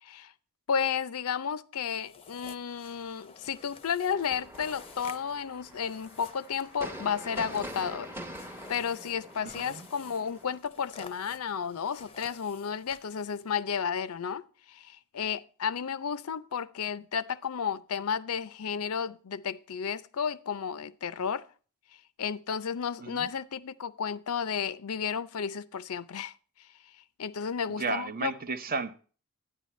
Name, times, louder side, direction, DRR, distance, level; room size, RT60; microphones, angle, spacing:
voice 1, 0.0-0.3 0.7-8.1 8.7-21.4 22.2-26.3 27.2-28.3, left 7 dB, 70° left, 0.5 m, -32 dB
sound 1, 1.9-13.6, left 5 dB, 25° left, 0.6 m, -51 dB
sound 2, 4.1-10.6, equal, 10° right, 0.9 m, -44 dB
voice 2, 9.4-9.9 23.0-23.3 27.8-29.0, right 4 dB, 40° right, 0.8 m, -34 dB
11.0 x 9.9 x 3.1 m
head